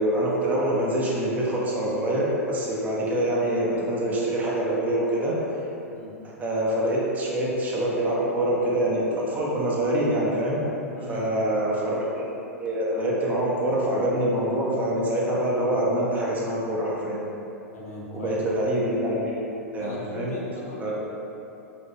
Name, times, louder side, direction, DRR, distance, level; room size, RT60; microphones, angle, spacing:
voice 1, 0.0-5.4 6.4-10.6 11.1-12.3 12.6-17.2 18.1-20.3 20.8-20.9, right 1 dB, 20° right, -5 dB, 0.7 m, -25 dB
voice 2, 10.9-11.3 17.7-18.4 19.8-20.9, left 2 dB, 75° left, -6 dB, 0.9 m, -38 dB
4.1 x 2.7 x 2.6 m, 2.9 s
figure-of-eight pair, 100°, 8 cm